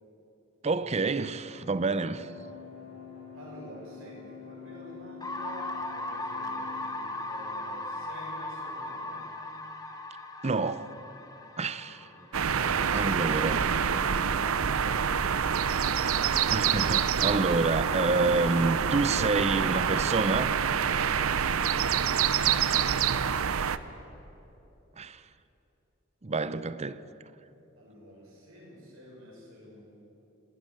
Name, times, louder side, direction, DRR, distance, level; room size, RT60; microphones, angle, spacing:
sound 1, 0.6-9.1, left 6 dB, 55° left, 6.9 m, -48 dB
voice 1, 0.6-2.3 10.4-10.9 11.6-12.1 12.9-13.7 16.5-20.6 25.0-25.2 26.2-27.0, right 3 dB, 30° right, 0.6 m, -28 dB
voice 2, 3.3-9.2 11.6-12.2 27.7-29.8, right 1 dB, 70° right, 6.9 m, -49 dB
sound 2, 5.2-13.1, left 2 dB, 20° left, 1.5 m, -38 dB
sound 3, 12.3-23.8, right 7 dB, 90° right, 0.7 m, -26 dB
27.5 x 13.0 x 8.7 m
head